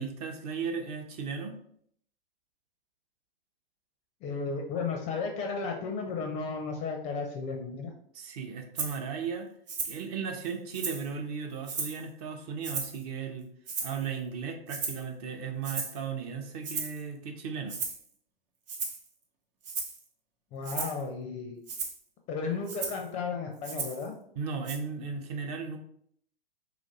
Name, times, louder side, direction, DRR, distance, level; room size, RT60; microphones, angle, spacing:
voice 1, 0.0-1.5 8.1-9.5 9.8-13.5 13.8-17.8 24.4-25.8, right 6 dB, 40° right, 4 dB, 0.6 m, -36 dB
voice 2, 4.2-7.9 20.5-21.6 22.3-24.1, left 4 dB, 25° left, 3 dB, 0.4 m, -34 dB
Rattle (instrument), 8.8-9.0 9.7-10.0 10.4-11.1 11.6-12.0 12.6-13.0 13.7-14.1 14.7-15.1 15.6-16.0 16.6-17.0 17.7-18.0 18.7-19.1 19.6-20.0 20.6-21.0 21.7-22.0 22.7-23.0 23.6-24.1 24.7-24.8, right 5 dB, 65° right, 0.9 m, -35 dB
2.9 x 2.5 x 4.0 m, 0.66 s
figure-of-eight pair, 110°, 30 cm